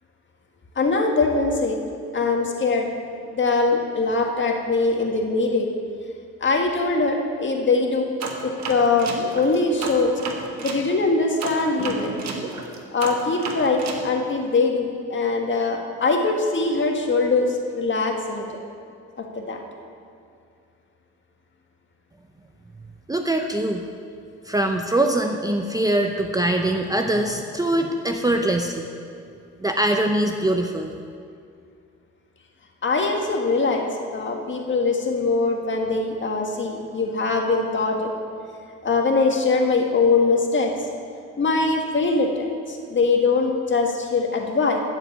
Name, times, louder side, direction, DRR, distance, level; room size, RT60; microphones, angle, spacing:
voice 1, 0.7-1.8 2.1-2.9 3.3-5.7 6.4-8.1 8.4-10.1 10.6-12.1 12.9-18.6 19.2-19.6 32.8-33.8 34.1-38.1 38.8-40.7 41.4-44.8, left 3 dB, 40° left, 2 dB, 1.7 m, -22 dB
sound 1, 8.2-10.8 11.4-14.0, right 4 dB, 60° right, 1.5 m, -32 dB
voice 2, 23.1-23.9 24.5-28.8 29.6-30.9, right 1 dB, 10° right, 3 dB, 0.7 m, -23 dB
13.0 x 5.1 x 8.5 m, 2.4 s
cardioid pair, 90°, 30 cm